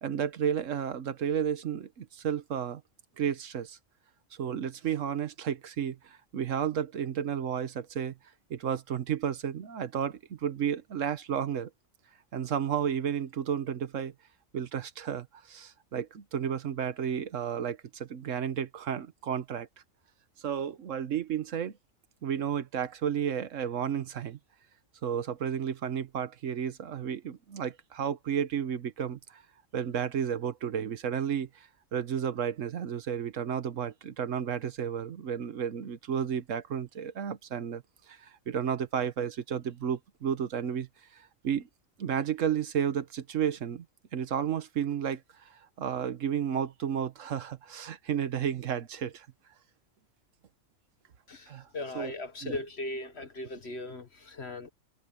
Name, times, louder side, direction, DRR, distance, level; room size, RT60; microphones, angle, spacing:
voice 1, 0.0-2.8 3.2-3.8 4.3-8.2 8.5-11.7 12.3-14.1 14.5-19.7 20.4-21.8 22.2-24.4 25.0-29.4 29.7-41.7 42.0-43.8 44.1-49.3 51.5-51.7 51.9-52.1 52.4-52.6, right 8 dB, 70° right, 1.4 m, -32 dB
voice 2, 51.7-54.7, left 2 dB, 50° left, 1.6 m, -38 dB
omnidirectional pair, 1.4 m